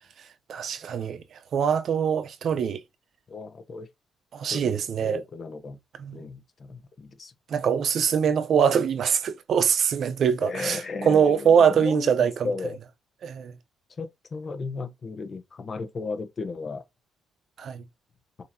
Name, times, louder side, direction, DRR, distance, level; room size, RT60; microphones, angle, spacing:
voice 1, 0.5-1.2 1.5-2.8 4.3-5.2 6.0-6.3 7.5-12.5 13.2-13.5 17.6-17.8, right 7 dB, 60° right, 0.7 m, -23 dB
voice 2, 3.3-3.9 4.5-4.8 5.0-5.8 6.1-7.3 10.4-12.8 14.0-16.8, left 4 dB, 40° left, 1.0 m, -35 dB
5.4 x 2.9 x 2.7 m
cardioid pair, 90°, 0 cm